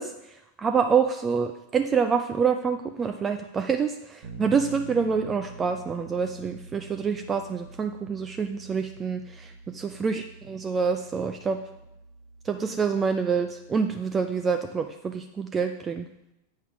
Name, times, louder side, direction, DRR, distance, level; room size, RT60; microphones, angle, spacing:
voice 1, 0.0-11.6 12.4-16.1, right 6 dB, 20° right, 6 dB, 0.5 m, -27 dB
Bass guitar, 4.2-14.0, right 3 dB, 55° right, 1.2 m, -46 dB
8.5 x 5.7 x 4.7 m, 0.86 s
figure-of-eight pair, 90°, 0 cm